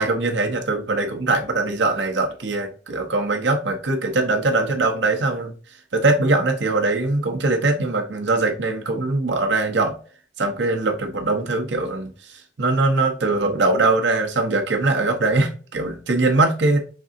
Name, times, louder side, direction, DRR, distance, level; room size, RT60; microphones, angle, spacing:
voice 1, 0.0-5.5 5.9-9.9 10.4-16.8, right 2 dB, 80° right, 3 dB, 0.8 m, -21 dB
5.3 x 3.6 x 2.6 m, 0.39 s
head